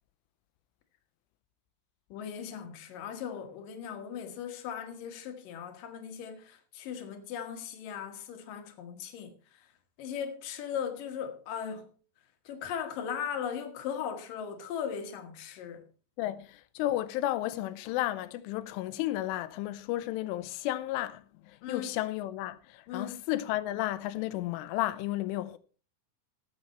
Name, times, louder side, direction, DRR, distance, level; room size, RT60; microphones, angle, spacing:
voice 1, 2.1-9.7 10.0-11.9 12.4-15.8 21.6-21.9 22.9-23.2, left 8 dB, 65° left, 2.4 m, -38 dB
voice 2, 16.2-25.6, left 15 dB, 90° left, 3.3 m, -33 dB
17.5 x 7.7 x 4.2 m
omnidirectional pair, 5.5 m